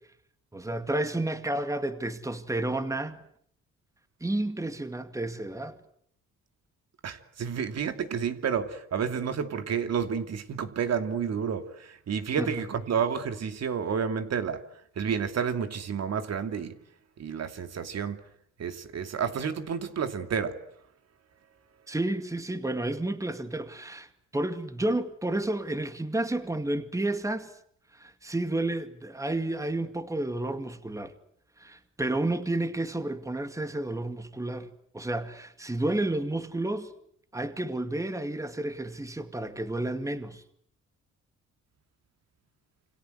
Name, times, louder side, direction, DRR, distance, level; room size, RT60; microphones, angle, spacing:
voice 1, 0.5-3.2 4.2-5.8 12.4-12.5 21.9-27.5 27.9-31.1 31.6-34.7 34.9-36.9 37.3-40.4, right 2 dB, 10° right, 2.2 m, -31 dB
voice 2, 7.0-14.6 15.0-16.8 17.2-18.2 18.6-20.6, right 7 dB, 55° right, 2.7 m, -30 dB
28.0 x 26.5 x 8.0 m
cardioid pair, 90°, 30 cm